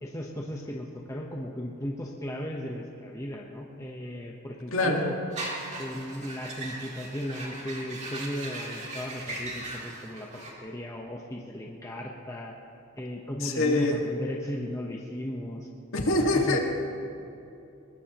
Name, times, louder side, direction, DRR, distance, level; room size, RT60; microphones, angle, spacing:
voice 1, 0.0-5.1 5.8-10.3 10.6-12.5 13.0-15.7 16.4-16.6, equal, 15° left, -1 dB, 1.0 m, -36 dB
voice 2, 4.7-5.1 13.4-14.0 15.9-16.6, left 2 dB, 70° left, 1 dB, 1.9 m, -24 dB
sound 1, 5.3-10.5, right 2 dB, 30° right, 2.4 m, -38 dB
21.5 x 20.5 x 3.0 m, 2.7 s
head